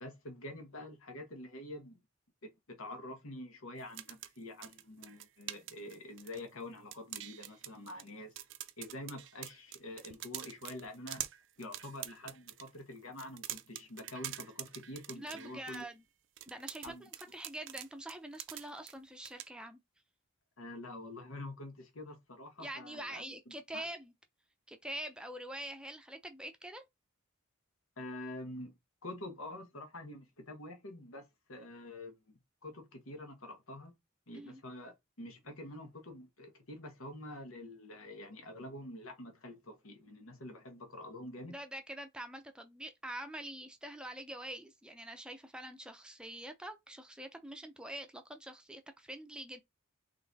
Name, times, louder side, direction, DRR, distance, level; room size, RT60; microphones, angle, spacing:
voice 1, 0.0-2.0 2.4-8.4 8.8-11.2 11.6-15.8 16.8-17.1 20.6-23.9 28.0-28.7 29.0-32.1 32.6-33.9 34.3-41.5, left 1 dB, 85° left, 1.4 m, -46 dB
sound 1, 3.8-6.6 6.9-8.1 8.4-12.7 13.1-15.8 16.4-18.9 19.2-19.5, right 13 dB, 60° right, 0.5 m, -45 dB
voice 2, 15.2-16.0 16.5-19.8 22.6-24.1 24.7-26.8 34.3-34.6 41.5-49.6, right 1 dB, 5° right, 0.6 m, -45 dB
3.9 x 3.2 x 4.0 m
head